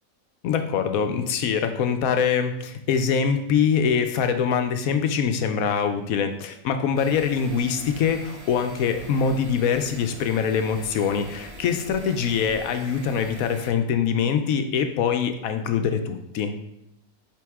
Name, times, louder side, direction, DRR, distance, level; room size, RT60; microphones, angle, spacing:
voice 1, 0.4-16.5, left 7 dB, 80° left, 7 dB, 1.0 m, -24 dB
sound 1, 7.0-13.7, right 1 dB, 30° right, 1.2 m, -43 dB
7.7 x 3.5 x 3.5 m, 0.81 s
omnidirectional pair, 1.5 m